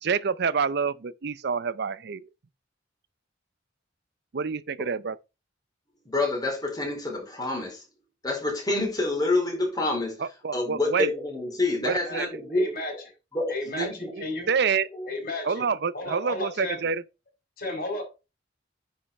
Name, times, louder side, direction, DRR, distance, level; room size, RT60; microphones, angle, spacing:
voice 1, 0.0-2.3 4.3-5.2 10.2-11.1 11.8-12.4 13.7-14.9 15.5-17.0, right 6 dB, 60° right, 0.6 m, -28 dB
voice 2, 6.1-7.8 8.2-10.2 10.5-12.6 13.3-14.1 14.9-15.1 15.4-15.5, left 2 dB, 20° left, 4.4 m, -27 dB
voice 3, 12.5-12.9 13.5-14.5 15.1-15.7 15.9-16.8 17.6-18.0, left 2 dB, 50° left, 4.5 m, -33 dB
9.9 x 5.6 x 4.2 m
head